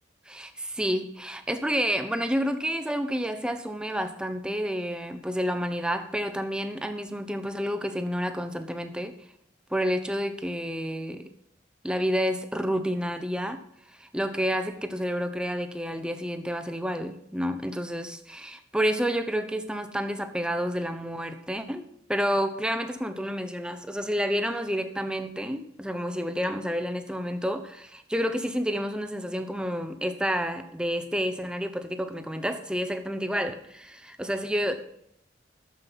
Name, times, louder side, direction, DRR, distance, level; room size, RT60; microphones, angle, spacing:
voice 1, 0.3-9.2 9.7-11.3 11.8-13.6 13.9-34.9, equal, 5° right, 8 dB, 0.9 m, -29 dB
12.0 x 7.5 x 6.2 m, 0.74 s
head